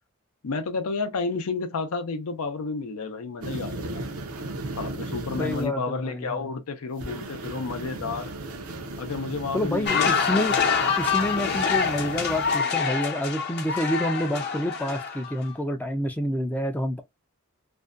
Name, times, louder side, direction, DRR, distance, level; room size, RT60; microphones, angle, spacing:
voice 1, 0.4-4.1 4.8-8.3 9.0-10.2 10.5-10.6, left 4 dB, 90° left, 0.5 m, -31 dB
sound 1, 3.4-5.6 7.0-12.5, right 2 dB, 85° right, 0.6 m, -36 dB
voice 2, 5.4-6.4 9.5-10.6 11.0-17.0, left 1 dB, 5° left, 0.3 m, -28 dB
sound 2, 9.9-15.5, left 6 dB, 50° left, 0.7 m, -26 dB
2.5 x 2.1 x 2.4 m
head